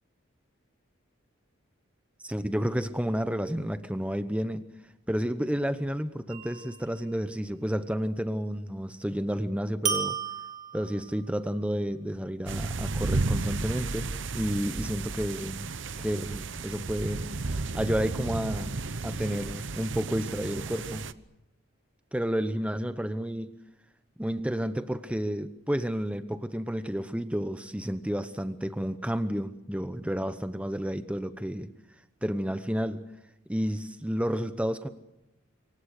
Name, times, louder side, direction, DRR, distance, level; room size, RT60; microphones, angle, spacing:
voice 1, 2.2-4.7 5.1-10.2 10.7-15.7 16.0-18.7 19.0-21.1 22.1-23.6 24.2-31.7 32.2-33.0 33.5-34.9, equal, 5° right, 10 dB, 0.9 m, -31 dB
sound 1, 6.3-7.0 9.9-11.3, right 7 dB, 40° right, 2.8 m, -33 dB
sound 2, 12.5-21.1, right 3 dB, 65° right, 0.9 m, -33 dB
27.0 x 24.0 x 6.6 m, 0.91 s
head